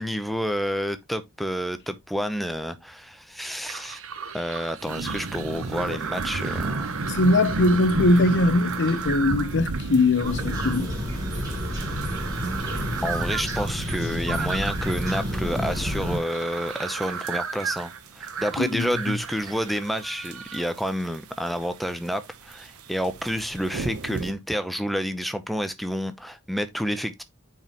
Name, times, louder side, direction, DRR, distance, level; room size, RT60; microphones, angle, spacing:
voice 1, 0.0-4.0 4.3-6.9 13.0-27.2, equal, ahead, 0.7 m, -29 dB
sound 1, 3.7-20.6, right 6 dB, 65° right, 1.1 m, -35 dB
sound 2, 4.8-24.3, right 2 dB, 90° right, 1.0 m, -36 dB
voice 2, 7.0-10.9 18.6-18.9, left 2 dB, 55° left, 0.8 m, -21 dB
sound 3, 10.2-16.2, equal, 15° right, 4.6 m, -29 dB
8.7 x 4.8 x 3.0 m
head